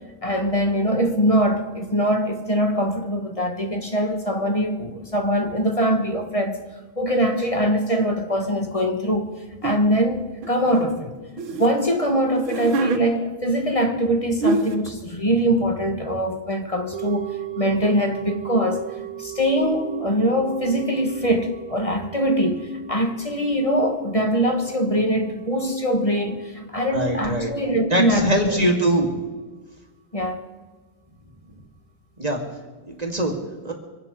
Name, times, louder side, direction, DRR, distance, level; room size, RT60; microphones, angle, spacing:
voice 1, 0.2-6.6 7.0-9.3 9.6-11.1 11.6-17.3 17.6-18.8 19.2-28.7 30.1-30.4, equal, 20° left, 1.4 m, -22 dB
sound 1, 9.6-9.8 10.4-11.7 12.4-13.0 14.0-14.1 14.4-14.9, right 3 dB, 75° right, 2.1 m, -24 dB
sound 2, 16.9-27.2 27.5-27.6, right 16 dB, 60° right, 1.4 m, -38 dB
voice 2, 26.9-27.5 27.9-29.1 32.2-32.4 33.0-33.3 33.6-33.7, right 1 dB, 20° right, 2.2 m, -22 dB
25.5 x 9.8 x 5.4 m
omnidirectional pair, 2.2 m